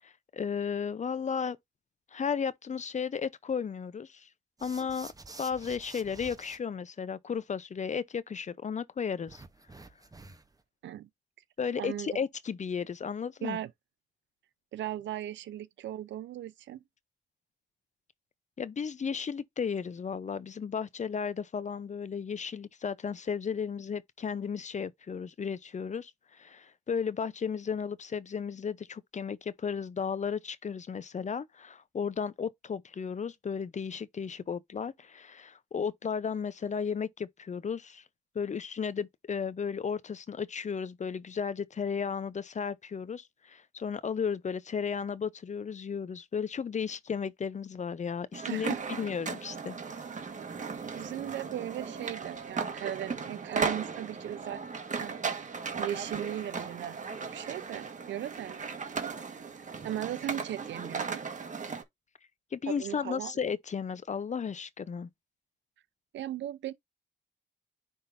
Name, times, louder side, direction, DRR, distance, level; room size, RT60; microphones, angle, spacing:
voice 1, 0.0-1.6 2.1-4.3 4.6-5.1 5.4-9.4 11.6-13.6 18.6-38.0 38.3-49.8 62.5-65.1, left 6 dB, 40° left, 0.7 m, -34 dB
sound 1, 4.6-6.6 9.3-10.6, right 3 dB, 20° right, 0.9 m, -49 dB
voice 2, 11.8-12.2 13.4-13.7 14.7-16.8 48.5-48.8 50.9-54.6 54.9-55.5 55.8-58.6 59.8-61.2 62.7-63.3 66.1-66.7, right 12 dB, 80° right, 0.6 m, -37 dB
sound 2, 48.3-61.8, right 5 dB, 40° right, 1.6 m, -37 dB
9.7 x 3.6 x 2.6 m
cardioid pair, 75°, 19 cm